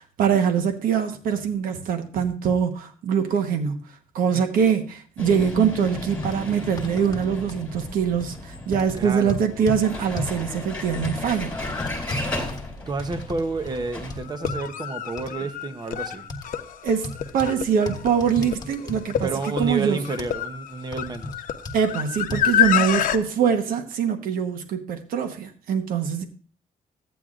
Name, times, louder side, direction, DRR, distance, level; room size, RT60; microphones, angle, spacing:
voice 1, 0.0-3.8 4.1-11.5 16.8-19.3 19.6-20.0 21.7-26.3, right 7 dB, 75° right, 1.1 m, -23 dB
Vehicle, 5.2-14.2, left 2 dB, 10° left, 2.9 m, -34 dB
sound 1, 5.8-5.9 6.2-6.3 6.8-7.6 8.2-8.4 8.7-9.8 10.2-10.4 11.0-11.2 11.8-13.4 13.7-13.8 14.1-14.6 15.2-15.3 16.3-16.5 17.0-17.5 17.9-19.3 19.6-19.7 20.2-20.3 20.9-21.4 21.6-21.8 22.3-22.4, left 2 dB, 25° left, 1.3 m, -33 dB
voice 2, 8.9-9.4 12.9-16.3 19.2-21.4, right 3 dB, 30° right, 0.8 m, -30 dB
sound 2, 13.2-13.3 14.3-23.2, left 10 dB, 65° left, 0.8 m, -27 dB
14.0 x 9.2 x 2.5 m
cardioid pair, 115°, 15 cm